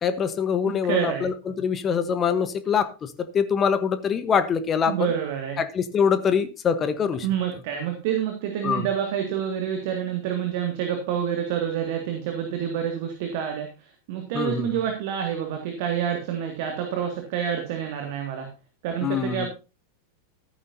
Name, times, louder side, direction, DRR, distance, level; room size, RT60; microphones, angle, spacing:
voice 1, 0.0-5.1 5.6-7.3 8.6-8.9 14.3-14.7 19.0-19.5, left 7 dB, 25° left, 12 dB, 1.0 m, -24 dB
voice 2, 0.9-1.3 4.9-5.6 7.2-13.7 14.1-18.5 18.8-19.5, right 9 dB, 50° right, 4 dB, 2.0 m, -28 dB
14.0 x 9.4 x 2.7 m, 0.30 s
figure-of-eight pair, 90°, 0 cm